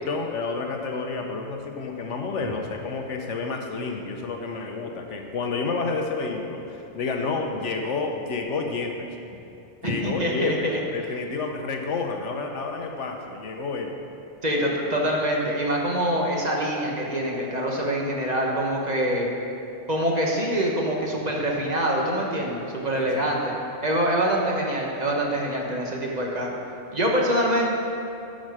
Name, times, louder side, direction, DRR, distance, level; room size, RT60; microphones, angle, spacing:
voice 1, 0.1-9.1 9.8-14.0 22.9-23.3, left 4 dB, 75° left, 3 dB, 1.1 m, -30 dB
voice 2, 9.8-10.8 14.4-19.3 19.9-23.5 23.8-26.6 26.9-27.7, equal, 35° right, -2 dB, 1.2 m, -25 dB
11.5 x 6.3 x 4.9 m, 2.7 s
omnidirectional pair, 1.3 m